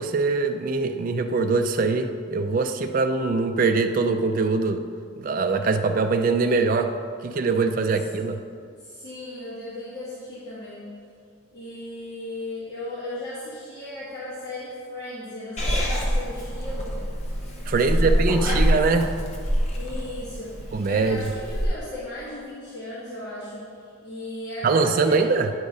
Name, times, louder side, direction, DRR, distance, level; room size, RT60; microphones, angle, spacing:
voice 1, 0.0-4.8 5.2-6.9 7.2-8.4 17.7-19.1 20.7-21.2 24.6-25.5, right 4 dB, 40° right, 6 dB, 0.3 m, -23 dB
voice 2, 8.6-10.9 11.5-16.9 17.7-18.8 19.7-25.2, left 1 dB, 50° left, -10 dB, 1.5 m, -36 dB
Purr / Meow, 15.6-21.6, equal, 30° left, 0.9 m, -26 dB
9.5 x 3.9 x 4.9 m, 2.3 s
head